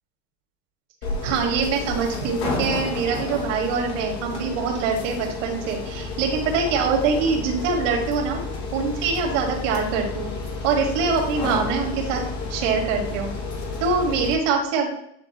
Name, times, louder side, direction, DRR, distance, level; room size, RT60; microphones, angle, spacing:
sound 1, 1.0-14.3, left 3 dB, 80° left, 1.9 m, -31 dB
voice 1, 1.2-8.4 8.7-10.3 10.6-12.2 12.5-13.3 13.8-14.9, right 5 dB, 85° right, 2 dB, 1.7 m, -24 dB
9.7 x 3.5 x 3.0 m, 0.73 s
supercardioid pair, 115°, 36 cm